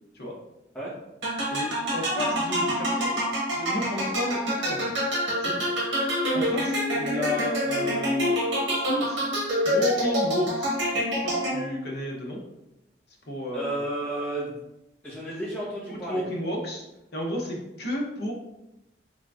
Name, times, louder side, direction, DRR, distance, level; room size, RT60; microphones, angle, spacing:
sound 1, 1.2-11.9, equal, 80° right, 1.0 m, -27 dB
voice 1, 1.5-3.2 3.5-4.9 5.4-5.7 6.3-8.4 8.7-9.2 9.6-10.8 11.2-12.4 13.3-13.8 16.1-16.8 17.1-18.3, left 1 dB, 55° left, -1 dB, 0.8 m, -32 dB
voice 2, 13.5-14.6 15.0-16.2, right 1 dB, 10° left, -9 dB, 1.3 m, -32 dB
3.6 x 3.3 x 2.5 m, 0.90 s
head